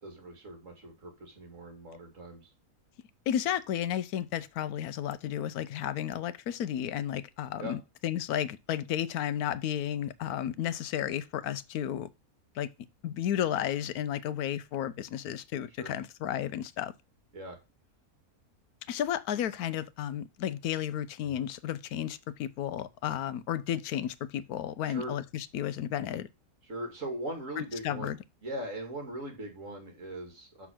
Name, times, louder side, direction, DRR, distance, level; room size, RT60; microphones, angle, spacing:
voice 1, 0.0-2.5 7.6-7.7 15.8-15.9 17.3-17.6 21.2-21.5 24.8-25.1 26.6-28.2 28.4-30.7, right 1 dB, 55° right, 2.6 m, -40 dB
voice 2, 3.3-12.1 12.6-12.7 13.0-16.9 18.9-26.3 27.8-28.2, left 10 dB, 80° left, 1.1 m, -33 dB
6.1 x 5.8 x 6.1 m
omnidirectional pair, 1.6 m